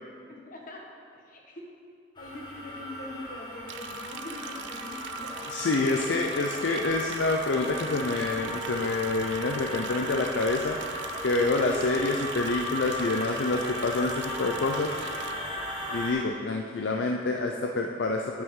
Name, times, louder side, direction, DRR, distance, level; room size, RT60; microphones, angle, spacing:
voice 1, 0.3-0.8 1.1-1.7 2.2-5.3, left 1 dB, 45° left, 0 dB, 1.3 m, -43 dB
sound 1, 2.2-16.1, equal, 25° left, 1.3 m, -36 dB
Liquid, 3.7-15.3, right 8 dB, 65° right, 0.4 m, -44 dB
voice 2, 5.5-10.8 11.2-15.0 15.9-18.4, left 3 dB, 60° left, 2 dB, 0.5 m, -27 dB
8.7 x 7.9 x 3.7 m, 2.4 s
head